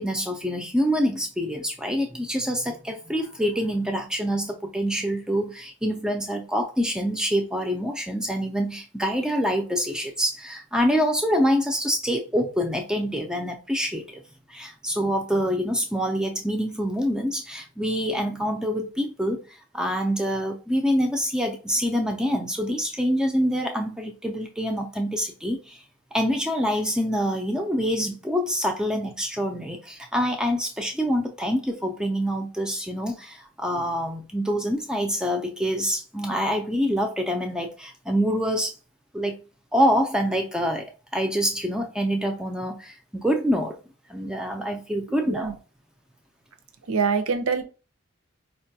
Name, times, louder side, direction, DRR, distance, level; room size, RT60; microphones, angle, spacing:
voice 1, 0.0-14.2 14.5-19.4 19.7-25.8 26.1-38.7 39.1-39.4 39.7-43.8 44.1-45.6, equal, 5° right, 0.3 m, -26 dB
voice 2, 46.9-47.6, right 5 dB, 85° right, 0.5 m, -24 dB
4.5 x 2.2 x 2.7 m
head